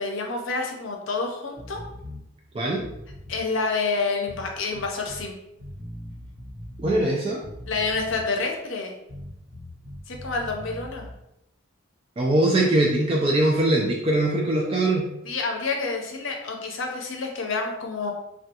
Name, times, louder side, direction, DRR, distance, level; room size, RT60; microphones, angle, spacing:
voice 1, 0.0-1.8 3.3-5.4 7.7-8.9 10.1-11.1 15.2-18.1, left 4 dB, 75° left, 2 dB, 0.6 m, -28 dB
sound 1, 1.6-2.2 2.7-3.5 4.3-5.3 5.6-7.1 7.4-8.4 9.1-11.2, left 1 dB, 70° right, 1.0 m, -40 dB
voice 2, 6.8-7.4 12.2-15.1, right 1 dB, 25° right, -1 dB, 0.3 m, -21 dB
3.4 x 2.2 x 2.8 m, 0.85 s
head